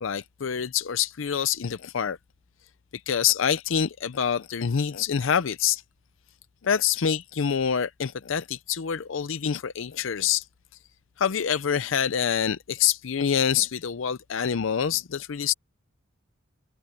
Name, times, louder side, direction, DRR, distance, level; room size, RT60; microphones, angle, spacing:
voice 1, 0.0-2.2 3.1-5.8 6.6-10.4 11.2-15.5, left 8 dB, 70° left, 0.5 m, -26 dB
head